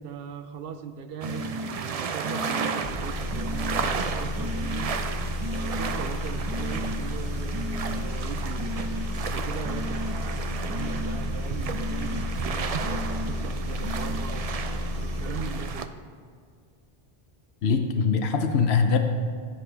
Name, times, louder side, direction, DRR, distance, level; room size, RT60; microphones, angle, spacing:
voice 1, 0.0-5.0 5.5-8.8 9.1-12.8 13.3-14.5 15.0-16.0, right 7 dB, 65° right, 10 dB, 0.8 m, -39 dB
sound 1, 1.2-1.7 2.2-2.7 3.3-3.8 4.4-4.9 5.4-5.9 6.5-7.0 7.5-8.0 8.5-9.1 9.6-10.2 10.7-11.2 11.7-12.3 12.8-13.3 13.8-14.2, left 1 dB, 25° right, 1.0 m, -36 dB
sound 2, 1.2-15.9, right 6 dB, 50° right, 0.5 m, -33 dB
sound 3, 2.8-15.8, left 2 dB, 50° left, 1.5 m, -32 dB
voice 2, 17.6-19.0, left 5 dB, 90° left, 6 dB, 1.0 m, -22 dB
15.0 x 7.5 x 3.4 m, 2.2 s
omnidirectional pair, 1.0 m